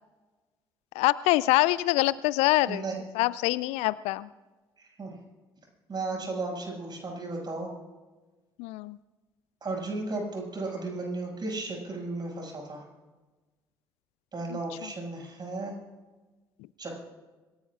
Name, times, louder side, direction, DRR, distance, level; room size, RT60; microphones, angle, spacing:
voice 1, 1.0-2.8 3.2-4.3 8.6-9.0, left 19 dB, 60° left, 20 dB, 0.4 m, -24 dB
voice 2, 4.8-5.1 5.9-7.7 9.6-12.8 14.3-15.8 16.8-16.9, right 3 dB, 35° right, -1 dB, 6.6 m, -34 dB
27.0 x 18.5 x 2.5 m, 1.2 s
figure-of-eight pair, 50°, 12 cm